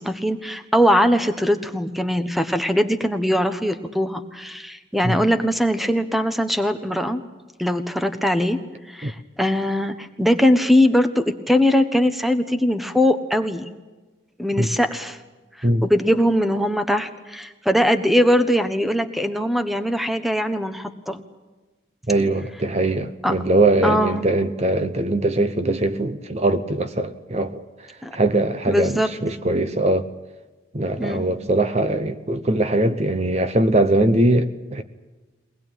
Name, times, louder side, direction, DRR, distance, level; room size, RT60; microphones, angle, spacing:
voice 1, 0.0-7.2 7.6-8.6 8.9-13.7 14.4-15.2 15.8-21.2 23.2-23.4 23.8-24.3 28.0-28.1 28.7-29.1 31.0-31.3, equal, ahead, 1.2 m, -21 dB
voice 2, 22.1-30.1 30.7-34.8, right 2 dB, 35° right, 0.9 m, -21 dB
23.5 x 20.0 x 9.2 m
head